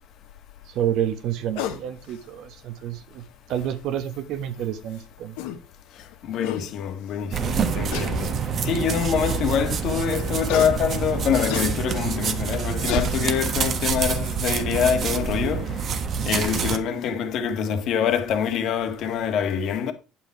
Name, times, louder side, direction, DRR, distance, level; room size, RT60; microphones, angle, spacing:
voice 1, 0.7-3.2 3.5-5.4, right 10 dB, 65° right, 1.3 m, -29 dB
sound 1, 1.6-1.8 3.3-3.4 5.0-5.1 5.4-5.6 6.1-6.2 6.4-6.6 7.9-8.1 8.9-9.0 10.5-10.7 11.5-11.7 12.5-12.6 12.9-13.1, left 9 dB, 80° left, 1.3 m, -29 dB
voice 2, 6.2-8.3 8.6-15.7 16.2-19.9, left 8 dB, 60° left, 1.6 m, -25 dB
sound 2, 7.3-16.8, right 6 dB, 50° right, 1.3 m, -26 dB
9.0 x 7.0 x 4.5 m
supercardioid pair, 80°, 0 cm